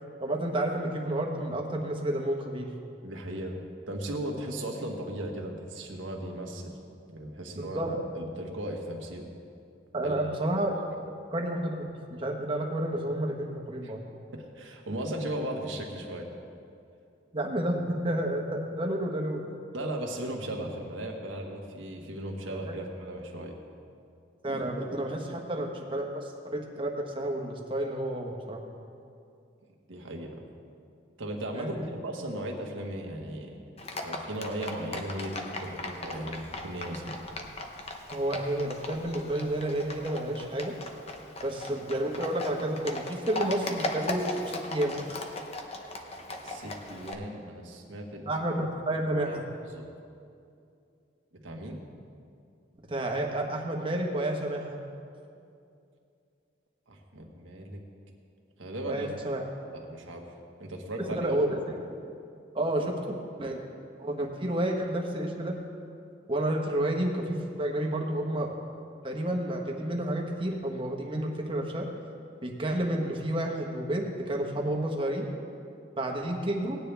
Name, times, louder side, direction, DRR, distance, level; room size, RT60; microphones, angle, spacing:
voice 1, 0.2-2.7 7.6-8.0 9.9-10.7 11.3-14.0 17.3-19.4 22.5-22.7 24.4-28.6 31.5-31.9 38.1-40.7 41.4-44.4 44.7-45.1 48.3-49.4 52.9-54.8 58.9-59.4 61.2-61.6 62.5-63.7 64.0-65.5 66.3-68.5 69.0-71.9 72.4-75.2 76.0-76.8, right 1 dB, 25° right, 1 dB, 1.2 m, -30 dB
voice 2, 3.0-3.6 3.9-6.7 7.1-9.3 9.9-10.2 13.8-13.9 14.3-16.3 19.7-23.6 29.9-30.4 31.2-33.6 34.0-37.2 46.4-48.3 48.9-49.4 49.7-49.8 51.3-51.8 56.9-57.8 58.6-59.1 59.6-60.2 60.6-61.4, right 1 dB, 90° right, 1 dB, 1.5 m, -37 dB
Livestock farm animals working animals, 33.8-47.1, left 2 dB, 30° left, 0.9 m, -38 dB
18.0 x 9.5 x 3.4 m, 2.5 s
head